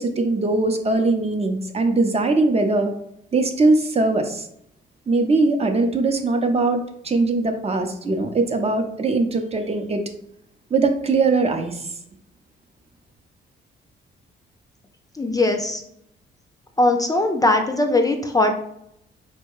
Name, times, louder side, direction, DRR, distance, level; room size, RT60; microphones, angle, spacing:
voice 1, 0.0-2.9 3.3-4.5 5.1-10.0 10.7-11.9, right 3 dB, 30° right, 5 dB, 0.7 m, -21 dB
voice 2, 15.2-15.8 16.8-18.5, left 2 dB, 20° left, 5 dB, 0.5 m, -20 dB
4.3 x 2.2 x 4.7 m, 0.73 s
cardioid pair, 90°, 20 cm